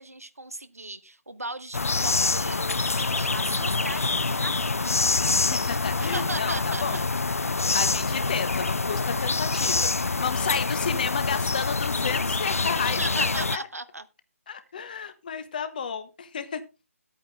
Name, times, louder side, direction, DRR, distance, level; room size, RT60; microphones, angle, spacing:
voice 1, 0.0-4.9 6.0-7.1 13.0-14.1, right 2 dB, 75° right, 1.1 m, -37 dB
sound 1, 1.7-13.6, left 3 dB, 70° left, 0.5 m, -26 dB
voice 2, 5.4-7.0 7.7-13.3 13.5-13.6 14.5-16.6, left 6 dB, 35° left, 1.2 m, -32 dB
12.5 x 8.7 x 3.6 m
figure-of-eight pair, 150°, 8 cm